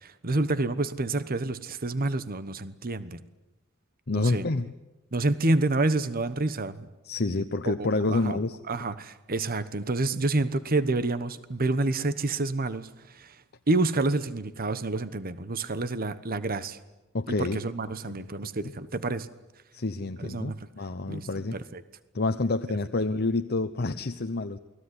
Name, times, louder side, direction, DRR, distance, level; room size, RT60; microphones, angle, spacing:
voice 1, 0.0-3.2 4.1-4.4 5.1-6.9 7.6-8.4 8.7-12.9 13.1-13.3 13.7-16.8 17.3-19.3 20.2-20.6 21.1-21.8, right 2 dB, 45° right, 14 dB, 1.1 m, -28 dB
voice 2, 4.1-4.7 7.0-8.6 17.1-17.6 18.0-18.2 18.6-18.7 19.7-21.6 22.1-24.6, left 2 dB, 50° left, 7 dB, 0.9 m, -28 dB
29.0 x 21.0 x 9.7 m, 1.0 s
head